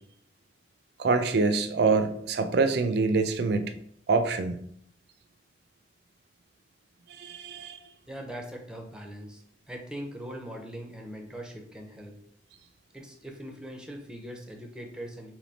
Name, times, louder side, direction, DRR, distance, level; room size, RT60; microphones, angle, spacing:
voice 1, 1.0-3.7 4.1-4.6 7.2-7.8, right 4 dB, 65° right, 9 dB, 0.4 m, -25 dB
voice 2, 8.1-12.2 12.9-15.3, equal, 5° right, 2 dB, 0.6 m, -41 dB
3.4 x 3.1 x 4.0 m, 0.66 s
head